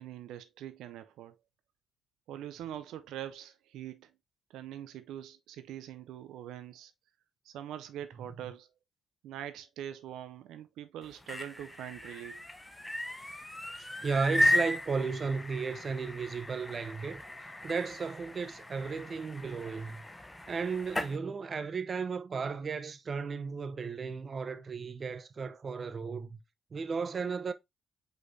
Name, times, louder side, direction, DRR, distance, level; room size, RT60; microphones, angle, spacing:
voice 1, 0.0-1.3 2.3-4.1 4.5-6.9 7.5-8.7 9.2-12.5, right 11 dB, 85° right, 0.4 m, -43 dB
sound 1, 11.0-21.2, left 1 dB, 10° left, 0.7 m, -35 dB
voice 2, 13.8-20.1 20.5-26.4 26.7-27.5, right 5 dB, 40° right, 0.6 m, -35 dB
4.9 x 4.2 x 2.6 m
cardioid pair, 90°, 0 cm